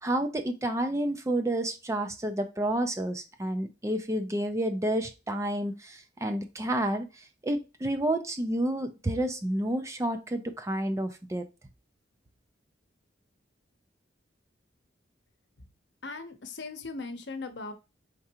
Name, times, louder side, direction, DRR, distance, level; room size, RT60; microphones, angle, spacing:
voice 1, 0.0-11.4, right 1 dB, 15° right, 7 dB, 0.5 m, -30 dB
voice 2, 16.0-17.7, left 3 dB, 65° left, 7 dB, 0.8 m, -39 dB
4.4 x 3.6 x 2.9 m, 0.28 s
head